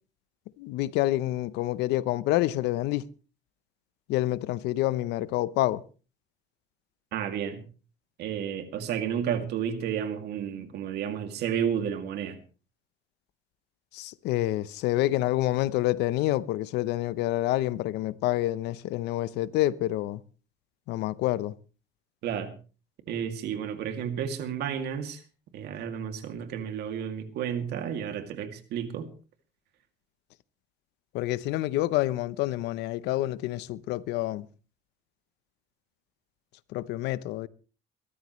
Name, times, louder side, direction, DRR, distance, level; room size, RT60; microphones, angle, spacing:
voice 1, 0.6-3.1 4.1-5.8 13.9-20.2 20.9-21.6 31.1-34.5 36.7-37.5, left 15 dB, 90° left, 0.8 m, -28 dB
voice 2, 7.1-7.6 8.2-12.4 22.2-22.5 23.1-25.2 25.5-29.1, right 8 dB, 75° right, 2.5 m, -32 dB
23.0 x 13.5 x 3.1 m
cardioid pair, 110°, 17 cm